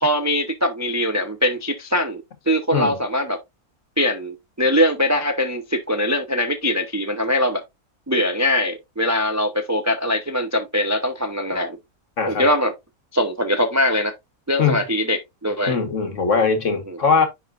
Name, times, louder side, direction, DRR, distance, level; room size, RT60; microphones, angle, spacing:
voice 1, 0.0-3.4 4.0-7.6 8.1-11.8 12.3-12.7 13.1-14.1 14.5-15.8 16.9-17.0, left 1 dB, 20° right, 0.4 m, -22 dB
voice 2, 12.2-12.5 14.6-14.8 15.6-17.3, left 5 dB, 55° left, 1.7 m, -20 dB
10.0 x 3.8 x 2.5 m
omnidirectional pair, 1.6 m